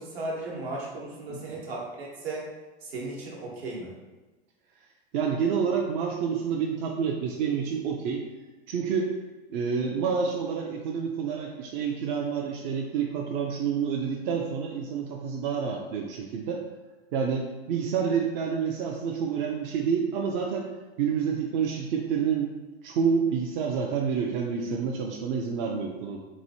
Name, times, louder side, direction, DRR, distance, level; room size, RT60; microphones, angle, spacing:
voice 1, 0.0-2.4 2.8-3.9, right 2 dB, 70° right, -3 dB, 1.1 m, -36 dB
voice 2, 5.1-8.2 8.7-9.1 9.5-16.6 17.1-20.7 21.0-22.5 22.8-26.2, right 6 dB, 50° right, 0 dB, 0.4 m, -28 dB
3.0 x 2.6 x 2.7 m, 1.2 s
hypercardioid pair, 95°, 32 cm